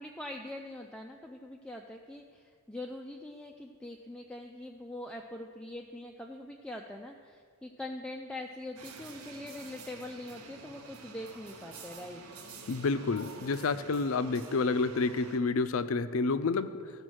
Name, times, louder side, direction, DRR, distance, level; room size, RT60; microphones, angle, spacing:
voice 1, 0.0-12.2, left 1 dB, 5° left, 1 dB, 0.3 m, -43 dB
sound 1, 8.8-15.4, right 3 dB, 75° right, 1.0 m, -48 dB
voice 2, 12.7-16.7, left 4 dB, 65° left, 12 dB, 0.5 m, -29 dB
15.0 x 5.1 x 6.3 m, 2.1 s
head